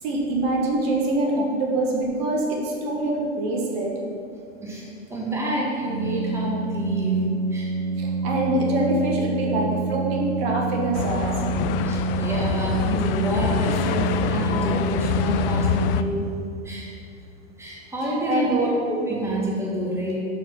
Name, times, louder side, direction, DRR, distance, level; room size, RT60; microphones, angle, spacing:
voice 1, 0.0-3.9 8.0-11.3 18.0-18.7, right 1 dB, 55° right, -1 dB, 1.5 m, -25 dB
voice 2, 4.6-7.2 7.5-7.7 11.8-16.3 16.6-16.9 17.6-20.2, right 1 dB, 5° right, -5 dB, 1.7 m, -28 dB
Organ, 5.8-16.6, right 4 dB, 25° right, 1.4 m, -28 dB
sound 1, 10.9-16.0, left 9 dB, 50° left, 0.4 m, -26 dB
6.5 x 4.9 x 6.1 m, 2.6 s
hypercardioid pair, 110°, 36 cm